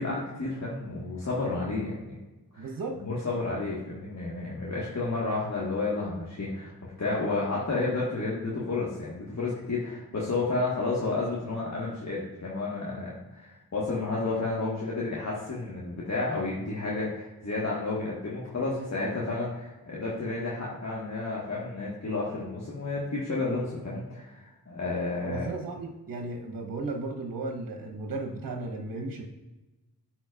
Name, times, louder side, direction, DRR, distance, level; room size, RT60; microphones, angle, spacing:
voice 1, 0.0-2.0 2.5-2.7 3.0-6.7 7.0-25.5, left 3 dB, 45° left, -6 dB, 1.6 m, -31 dB
voice 2, 2.6-3.0 25.2-29.2, right 2 dB, 60° right, 3 dB, 1.0 m, -35 dB
9.7 x 4.2 x 2.4 m, 1.1 s
cardioid pair, 40°, 39 cm